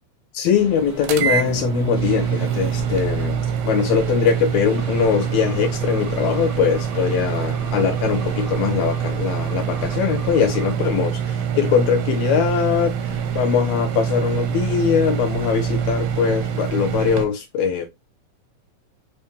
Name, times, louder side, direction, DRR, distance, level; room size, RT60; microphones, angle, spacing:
voice 1, 0.3-17.9, left 7 dB, 80° left, 1.7 m, -21 dB
sound 1, 0.5-17.1, right 1 dB, 25° left, 0.4 m, -40 dB
sound 2, 1.0-17.2, right 8 dB, 85° right, 2.0 m, -25 dB
sound 3, 4.8-10.8, equal, 60° right, 0.7 m, -39 dB
4.6 x 2.8 x 3.4 m
omnidirectional pair, 3.5 m